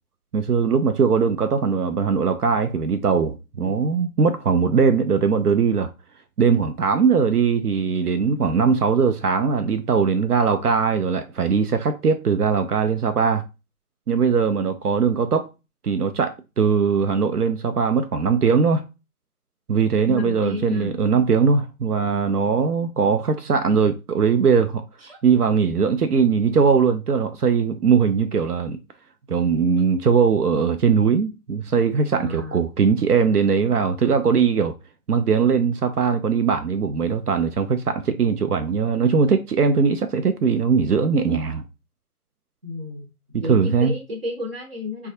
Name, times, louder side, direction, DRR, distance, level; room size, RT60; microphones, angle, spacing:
voice 1, 0.3-5.9 6.4-13.4 14.1-15.5 15.8-18.8 19.7-24.8 25.2-28.8 29.3-34.8 35.1-41.6 43.3-43.9, right 6 dB, 80° right, 0.5 m, -20 dB
voice 2, 20.0-20.9 25.0-25.2 32.1-32.6 42.6-43.1 43.4-45.1, left 2 dB, 40° right, 0.8 m, -32 dB
3.1 x 2.3 x 2.6 m
figure-of-eight pair, 155°, 46 cm